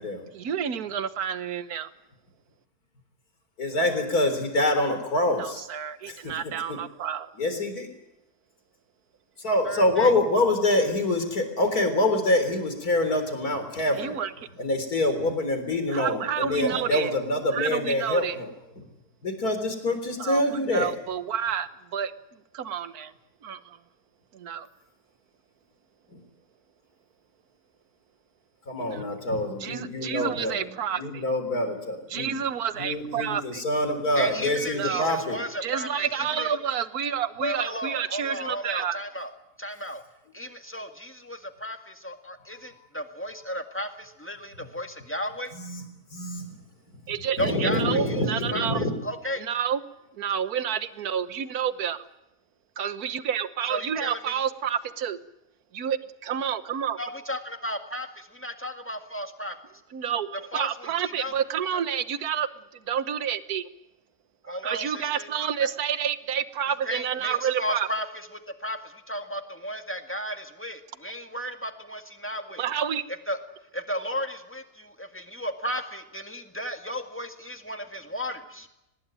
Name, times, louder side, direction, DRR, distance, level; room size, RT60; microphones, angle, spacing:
voice 1, 0.3-1.9 5.3-7.3 14.0-14.3 15.9-17.1 17.5-18.4 20.2-20.4 20.7-22.1 22.5-23.1 23.4-23.8 24.3-24.7 28.8-29.0 29.6-31.2 32.1-33.6 34.7-35.1 35.6-39.0 47.1-48.8 49.4-49.8 50.2-52.1 52.8-55.2 55.7-57.0 59.9-62.5 62.9-63.7 64.4-67.9 72.6-73.0, right 8 dB, 70° right, 13 dB, 1.6 m, -29 dB
voice 2, 3.6-5.7 6.1-6.8 7.4-7.9 9.4-14.2 14.6-18.5 18.8-18.9 19.2-20.9 26.1-26.2 28.7-30.7 31.0-32.3 32.8-35.4 45.5-45.8 46.1-46.5 47.4-48.9, left 1 dB, 70° left, 8 dB, 4.4 m, -26 dB
voice 3, 9.7-10.1 34.2-36.5 37.4-39.3 39.6-40.0 40.3-45.5 47.4-48.2 48.5-49.4 53.7-54.4 57.0-59.6 60.5-61.3 61.7-61.8 64.5-65.3 66.9-68.1 68.6-72.6 73.3-73.4 73.7-78.7, equal, 10° left, 6 dB, 1.9 m, -34 dB
24.0 x 20.0 x 9.0 m, 0.90 s
omnidirectional pair, 1.7 m